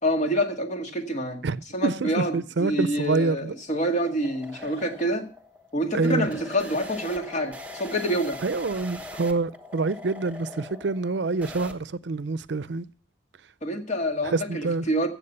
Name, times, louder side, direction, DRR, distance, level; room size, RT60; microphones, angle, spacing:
voice 1, 0.0-1.4 1.7-5.3 5.7-8.4 13.6-15.1, equal, 40° left, 1.8 m, -27 dB
voice 2, 1.4-3.5 5.9-6.3 8.4-12.9 14.2-14.9, right 3 dB, 70° right, 0.5 m, -27 dB
sound 1, 2.8-11.7, left 1 dB, 10° right, 1.1 m, -42 dB
15.5 x 7.3 x 5.4 m
head